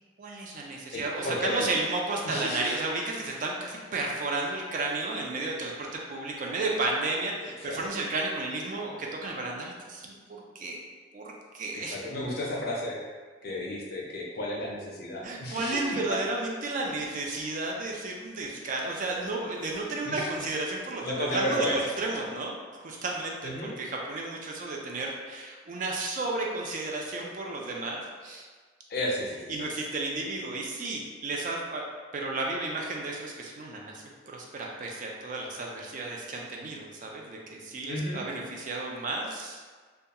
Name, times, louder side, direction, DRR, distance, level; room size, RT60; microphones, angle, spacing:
voice 1, 0.2-10.8 11.1-12.0 15.2-28.5 29.5-31.8 32.1-39.6, right 2 dB, 45° right, -1 dB, 0.3 m, -33 dB
voice 2, 0.9-1.7 2.2-2.7 7.4-7.8 11.7-13.0 13.4-15.8 16.1-16.2 20.0-20.3 21.0-21.8 23.4-23.8 28.9-29.7 37.9-38.2, left 1 dB, 50° left, -2 dB, 0.4 m, -33 dB
2.3 x 2.2 x 2.8 m, 1.5 s
head